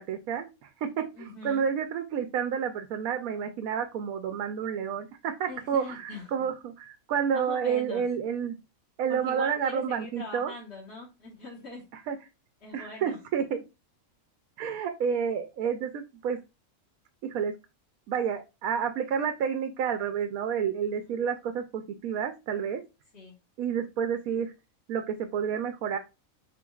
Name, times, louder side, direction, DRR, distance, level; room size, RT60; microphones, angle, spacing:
voice 1, 0.0-8.6 9.0-10.5 11.9-12.2 12.7-13.6 14.6-16.4 17.2-17.5 18.1-22.8 23.6-24.5 24.9-26.0, right 7 dB, 90° right, 6 dB, 1.1 m, -30 dB
voice 2, 1.1-1.6 5.5-6.5 7.3-8.0 9.1-11.8 12.6-13.2 20.9-21.0 23.1-23.4, left 3 dB, 50° left, -4 dB, 1.4 m, -42 dB
6.0 x 3.7 x 2.3 m, 0.26 s
omnidirectional pair, 1.4 m